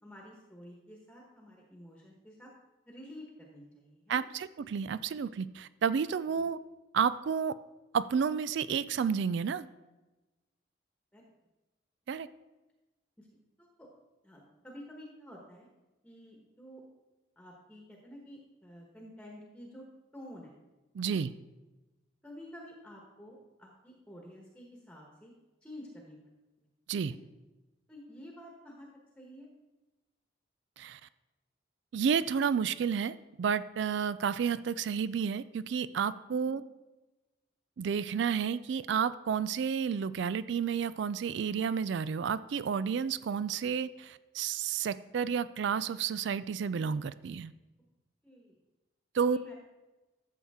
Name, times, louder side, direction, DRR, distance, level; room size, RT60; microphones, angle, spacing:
voice 1, 0.0-2.5 2.9-4.3 6.4-6.5 11.1-11.2 13.2-13.3 13.6-13.9 14.2-15.7 16.0-16.8 17.4-19.9 20.1-20.5 21.0-21.2 22.2-25.3 25.6-26.2 27.1-27.2 27.9-28.9 29.2-29.5 36.3-36.6 48.2-48.6 49.3-49.5, equal, 5° left, -1 dB, 1.2 m, -50 dB
voice 2, 4.1-6.6 6.9-7.5 7.9-9.7 12.1-12.3 21.0-21.3 26.9-27.1 30.8-31.0 31.9-36.6 37.8-47.5 49.1-49.4, right 7 dB, 70° right, 16 dB, 0.3 m, -31 dB
13.0 x 7.2 x 3.6 m, 1.1 s
head